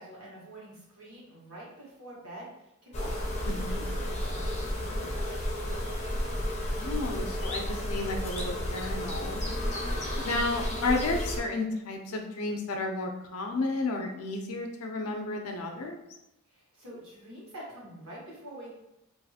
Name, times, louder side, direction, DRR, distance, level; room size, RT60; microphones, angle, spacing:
voice 1, 0.0-5.5 16.5-18.8, right 1 dB, 65° right, -6 dB, 1.2 m, -47 dB
sound 1, 2.9-11.4, left 1 dB, 30° left, 0.5 m, -32 dB
voice 2, 3.5-3.8 6.7-9.4 10.2-16.0, left 2 dB, 80° left, 3 dB, 0.5 m, -32 dB
2.5 x 2.4 x 2.7 m, 0.89 s
head